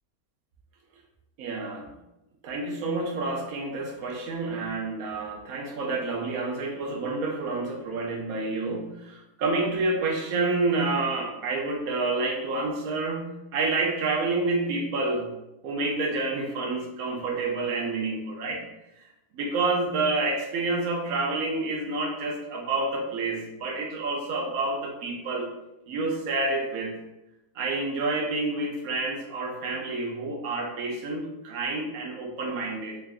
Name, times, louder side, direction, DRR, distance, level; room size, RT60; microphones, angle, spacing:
voice 1, 1.4-1.9 2.4-15.3 15.6-18.6 19.0-19.1 19.3-25.5 25.9-27.0 27.6-33.0, right 3 dB, 75° right, 1 dB, 1.1 m, -29 dB
3.4 x 2.4 x 3.4 m, 0.95 s
omnidirectional pair, 1.5 m